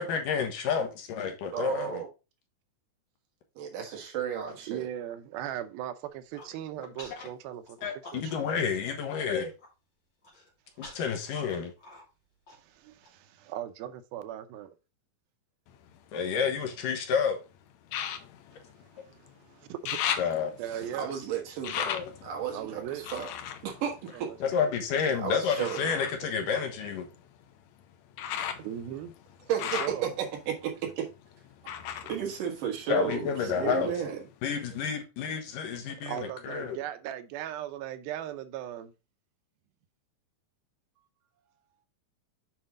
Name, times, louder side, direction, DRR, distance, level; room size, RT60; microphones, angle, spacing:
voice 1, 0.0-2.0 7.2-7.3 7.8-9.5 10.8-11.7 16.1-17.4 20.2-20.5 21.9-22.1 24.4-27.1 32.9-33.9 34.4-36.8, left 6 dB, 70° left, 2.8 m, -30 dB
voice 2, 1.5-2.1 3.6-4.9 20.6-23.3 23.6-24.4 25.2-26.0 29.5-31.1 32.0-34.2, right 8 dB, 70° right, 3.1 m, -33 dB
voice 3, 4.7-7.8 8.1-8.3 12.5-14.8 18.9-20.0 20.6-21.2 22.5-23.1 24.1-24.4 24.7-24.9 26.2-26.6 28.6-29.1 29.4-30.1 33.3-33.8 36.0-38.9, right 11 dB, 90° right, 2.6 m, -39 dB
Human voice, 6.1-6.5 7.0-7.3 7.6-8.6 8.9-9.0 9.3-9.7 10.2-13.1, left 2 dB, 30° left, 3.2 m, -50 dB
sound 1, 15.7-17.0 17.8-19.4 19.6-24.8 25.4-33.3 33.6-34.4 34.9-35.0, left 9 dB, 90° left, 1.6 m, -38 dB
7.8 x 5.2 x 3.7 m
omnidirectional pair, 4.2 m